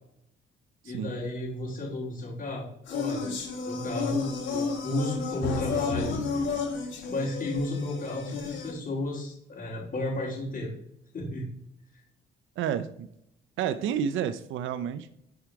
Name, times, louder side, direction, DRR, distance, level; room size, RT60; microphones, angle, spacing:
voice 1, 0.8-3.3 3.7-6.2 7.1-10.7 11.1-11.5 11.9-12.0, left 1 dB, 45° left, -6 dB, 2.8 m, -33 dB
sound 1, 2.9-8.7, left 4 dB, 80° left, 3.6 m, -32 dB
voice 2, 12.6-13.1 13.6-15.1, right 8 dB, 80° right, 12 dB, 0.5 m, -30 dB
9.7 x 4.7 x 4.7 m, 0.76 s
cardioid pair, 90°, 20 cm